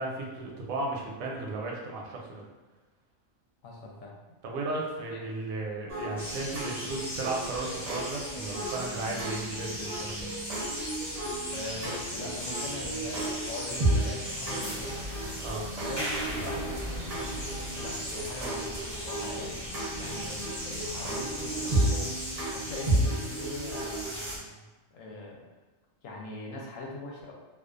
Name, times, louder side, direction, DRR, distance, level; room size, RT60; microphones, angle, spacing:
voice 1, 0.0-2.4 4.4-10.3 15.4-15.6 20.0-20.2, right 2 dB, 85° right, -1 dB, 1.0 m, -35 dB
voice 2, 3.6-4.2 5.1-5.2 11.5-15.0 15.8-19.6 20.0-22.0 22.5-24.6 24.9-25.4 26.0-27.3, left 2 dB, 75° left, -2 dB, 0.9 m, -42 dB
sound 1, 5.9-24.3, right 1 dB, 40° right, 0.6 m, -33 dB
sound 2, 6.2-24.4, equal, 25° left, 0.3 m, -38 dB
2.4 x 2.3 x 2.4 m, 1.2 s
omnidirectional pair, 1.4 m